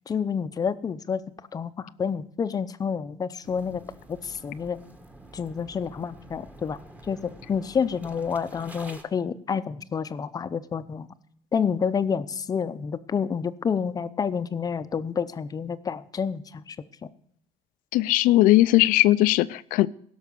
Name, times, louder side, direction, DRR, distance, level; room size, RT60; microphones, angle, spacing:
voice 1, 0.1-1.2 1.5-3.8 4.1-4.8 5.3-6.8 7.1-7.2 7.5-11.1 11.5-16.8 17.0-17.1, left 6 dB, 25° left, 13 dB, 0.6 m, -29 dB
sound 1, 3.4-9.0, right 1 dB, 10° right, 1.3 m, -48 dB
voice 2, 17.9-19.9, left 16 dB, 80° left, 16 dB, 0.5 m, -19 dB
16.5 x 6.4 x 6.9 m, 0.67 s
cardioid pair, 135°, 14 cm